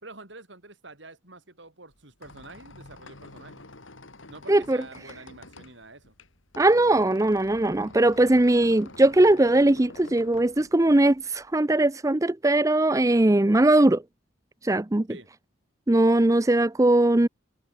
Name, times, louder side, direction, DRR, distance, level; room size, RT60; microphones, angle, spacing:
voice 1, 0.0-3.7 4.3-6.1 15.1-15.3, right 2 dB, 65° right, 4.6 m, -47 dB
Squeak, 1.9-11.5, left 2 dB, 75° left, 3.5 m, -48 dB
voice 2, 6.6-14.0 14.6-15.1 15.9-17.3, right 1 dB, 15° right, 0.5 m, -20 dB
head